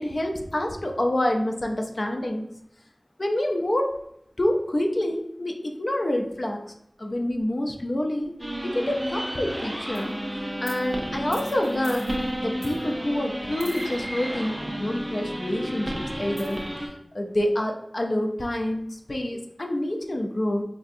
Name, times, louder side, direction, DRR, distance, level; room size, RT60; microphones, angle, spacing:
voice 1, 0.0-2.5 3.2-4.0 4.4-6.6 7.0-8.3 8.6-10.2 10.6-12.1 12.4-16.6 17.1-20.6, left 1 dB, 55° left, 3 dB, 0.4 m, -27 dB
sound 1, 8.4-16.9, equal, 20° right, 0.6 m, -32 dB
4.2 x 2.5 x 2.6 m, 0.76 s
wide cardioid pair, 60°, 0 cm